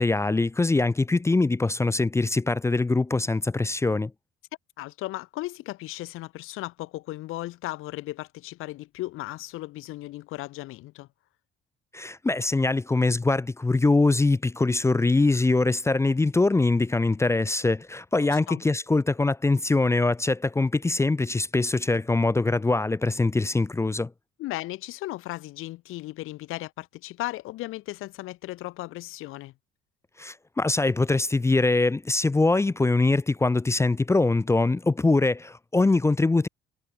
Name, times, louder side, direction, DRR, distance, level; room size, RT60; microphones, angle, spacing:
voice 1, 0.0-4.1 11.9-24.1 30.2-36.5, left 3 dB, 15° left, 0.6 m, -23 dB
voice 2, 4.8-11.1 18.3-18.6 24.4-29.5, left 17 dB, 80° left, 1.0 m, -36 dB
cardioid pair, 115°, 21 cm